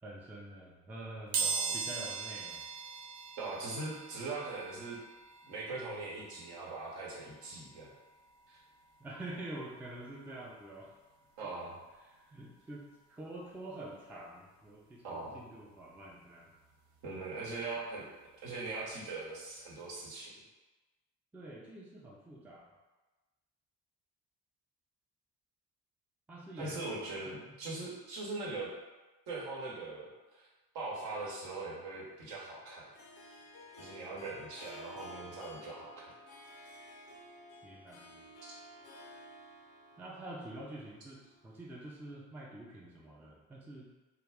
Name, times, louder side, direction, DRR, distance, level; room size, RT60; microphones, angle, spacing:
voice 1, 0.0-2.6 9.0-10.9 12.0-12.9 13.2-16.5 21.3-22.7 26.3-27.0 27.2-27.6 34.3-34.5 37.6-38.2 40.0-43.9, right 1 dB, 5° right, -4 dB, 0.4 m, -47 dB
sound 1, 1.3-12.0 12.5-12.6 13.7-13.8 14.1-16.2 16.6-19.2 19.5-19.7 20.0-20.1, right 5 dB, 75° right, 0.5 m, -42 dB
voice 2, 1.4-1.7 3.4-5.0 5.5-7.9 8.5-8.6 11.4-11.8 15.0-15.4 17.0-18.0 18.4-20.3 26.6-28.7 29.3-30.5 30.7-32.9 33.8-35.9, right 3 dB, 60° right, -4 dB, 0.9 m, -41 dB
Harp, 31.8-42.0, left 1 dB, 75° left, 0.6 m, -53 dB
2.3 x 2.0 x 3.4 m, 1.2 s
figure-of-eight pair, 45°, 44 cm